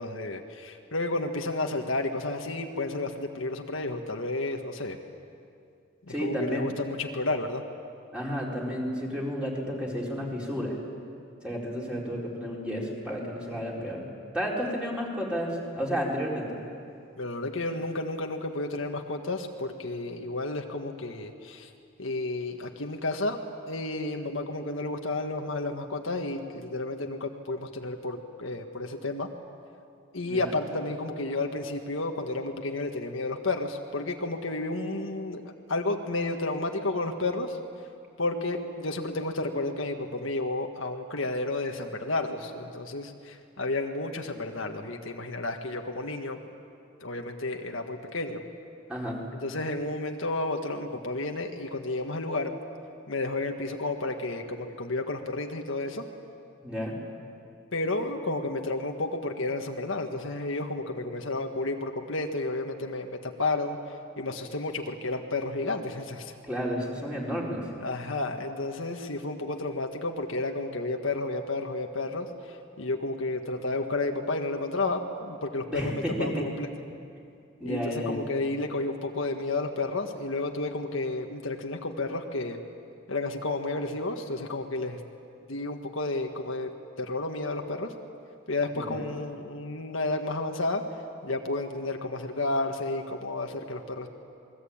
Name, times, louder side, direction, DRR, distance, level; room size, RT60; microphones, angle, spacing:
voice 1, 0.0-5.0 6.1-7.6 17.2-21.7 22.0-23.4 23.7-29.3 30.1-37.6 38.2-46.4 47.0-48.4 49.4-52.5 53.1-56.1 57.7-63.8 64.2-66.3 67.8-76.7 77.6-77.8 78.1-82.6 83.1-85.0 85.5-86.7 87.0-87.9 88.5-90.8 91.2-94.1, left 2 dB, 70° left, 3 dB, 1.6 m, -31 dB
voice 2, 6.1-6.7 8.1-10.8 11.4-14.1 14.3-16.6 30.3-30.5 48.9-49.2 56.6-56.9 66.4-67.8 75.7-76.5 77.6-78.2 88.7-89.1, equal, 5° right, -4 dB, 4.5 m, -32 dB
27.5 x 21.0 x 8.8 m, 2.5 s
head